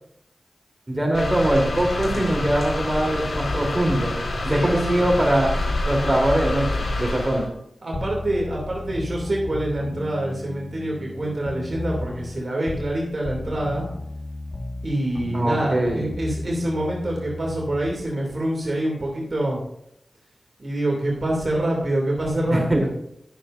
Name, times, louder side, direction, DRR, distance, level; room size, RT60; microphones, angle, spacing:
voice 1, 0.9-4.1 4.4-5.5 5.9-6.6 7.0-7.5 15.3-16.0 22.5-22.8, right 1 dB, 30° right, 1 dB, 3.4 m, -22 dB
sound 1, 1.1-7.5, left 2 dB, 85° left, 4.0 m, -27 dB
voice 2, 4.5-5.1 7.8-13.9 14.8-19.6 20.6-22.9, right 1 dB, 55° right, -2 dB, 2.7 m, -26 dB
sound 2, 7.9-13.0 13.2-18.0, left 2 dB, 55° left, 1.6 m, -34 dB
20.5 x 7.1 x 2.6 m, 0.76 s
cardioid pair, 45°, 0 cm